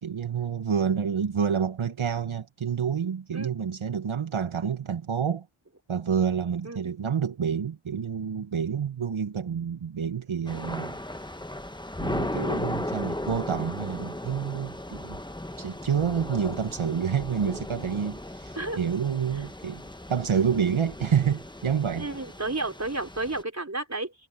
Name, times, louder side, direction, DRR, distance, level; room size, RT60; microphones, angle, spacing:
voice 1, 0.0-5.5 5.9-11.0 12.0-15.2 15.6-19.8 20.1-22.1, right 7 dB, 75° right, 1.1 m, -28 dB
Thunder / Rain, 10.5-23.4, left 1 dB, 10° left, 1.0 m, -36 dB
voice 2, 22.0-24.1, right 2 dB, 35° right, 3.7 m, -32 dB
wide cardioid pair, 50°, 49 cm